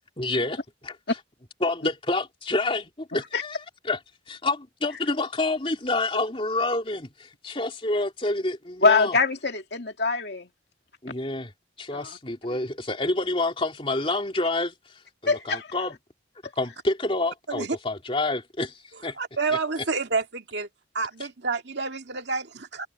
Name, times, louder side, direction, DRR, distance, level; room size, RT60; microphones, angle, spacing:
voice 1, 0.2-1.0 1.6-3.6 3.9-4.0 4.3-9.2 11.0-11.5 11.8-14.7 15.2-15.9 16.6-19.2, left 2 dB, 30° left, 3.0 m, -28 dB
voice 2, 8.8-10.5 11.9-12.1 15.3-15.7, left 4 dB, 60° left, 2.6 m, -23 dB
voice 3, 19.1-20.7 20.9-22.9, right 4 dB, 65° right, 2.2 m, -29 dB
open air
head